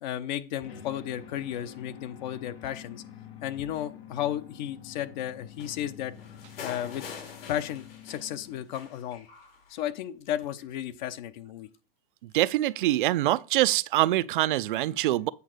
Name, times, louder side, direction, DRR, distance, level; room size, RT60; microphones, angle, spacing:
voice 1, 0.0-3.0 3.4-6.1 6.6-7.1 7.5-9.3 9.7-11.7, left 11 dB, 50° left, 0.8 m, -34 dB
sound 1, 0.6-8.9, left 9 dB, 85° left, 2.3 m, -48 dB
sound 2, 5.6-8.5 8.7-9.7 10.6-10.7, left 6 dB, 70° left, 3.1 m, -44 dB
voice 2, 12.3-15.3, right 15 dB, 55° right, 0.4 m, -24 dB
8.3 x 3.7 x 6.6 m
hypercardioid pair, 145°, 30 cm